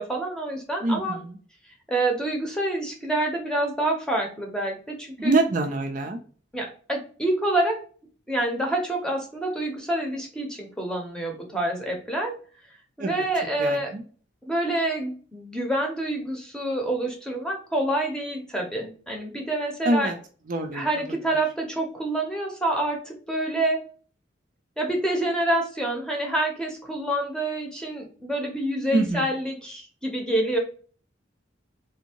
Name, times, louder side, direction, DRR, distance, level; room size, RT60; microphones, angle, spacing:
voice 1, 0.0-1.2 1.9-5.4 6.5-7.8 8.3-12.3 13.0-13.9 14.5-20.1 20.7-23.8 24.8-30.6, right 1 dB, 5° left, 1 dB, 0.8 m, -27 dB
voice 2, 0.8-1.3 5.2-6.2 13.0-13.1 13.6-14.0 19.8-20.1 20.5-20.8 28.9-29.2, right 2 dB, 45° right, 4 dB, 0.4 m, -24 dB
3.4 x 2.6 x 2.8 m, 0.41 s
head